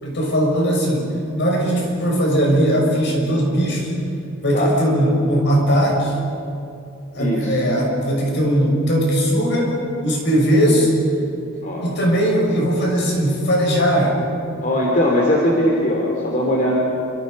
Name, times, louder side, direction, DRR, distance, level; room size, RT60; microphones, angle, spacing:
voice 1, 0.0-3.9 4.4-6.2 7.1-9.8 10.0-10.9 11.8-14.2, equal, 60° left, -1 dB, 6.4 m, -19 dB
voice 2, 7.2-7.7 11.6-11.9 14.6-16.8, left 1 dB, 40° left, -2 dB, 2.9 m, -20 dB
27.5 x 25.5 x 5.3 m, 2.6 s
head